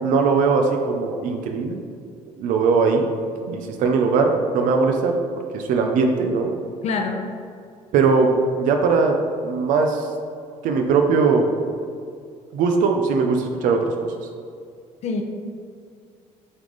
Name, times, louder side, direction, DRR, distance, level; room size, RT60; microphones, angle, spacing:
voice 1, 0.0-1.8 2.4-3.1 3.5-5.2 5.5-6.5 7.9-9.2 9.4-10.1 10.6-11.5 12.5-13.8, right 4 dB, 75° right, 4 dB, 0.6 m, -20 dB
voice 2, 6.8-7.3 15.0-15.2, left 4 dB, 55° left, 3 dB, 0.7 m, -25 dB
7.9 x 3.7 x 3.9 m, 2.2 s
cardioid pair, 110°, 13 cm